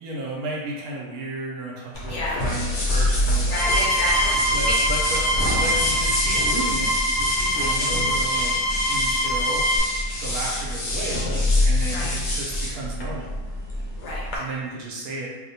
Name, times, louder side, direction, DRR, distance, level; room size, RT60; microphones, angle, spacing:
voice 1, 0.0-3.7 4.5-5.2 5.6-8.5 8.9-9.7 10.2-11.3 11.6-13.3 14.4-15.3, right 2 dB, 75° right, -3 dB, 1.0 m, -33 dB
sound 1, 1.9-14.4, left 1 dB, 90° left, 1.3 m, -26 dB
voice 2, 2.1-2.4 3.4-4.8 7.5-7.7 11.9-12.1 14.0-14.4, left 2 dB, 70° left, -5 dB, 0.8 m, -30 dB
sound 2, 3.5-9.8, equal, 25° right, 0.9 m, -24 dB
2.8 x 2.0 x 2.7 m, 1.2 s
omnidirectional pair, 1.7 m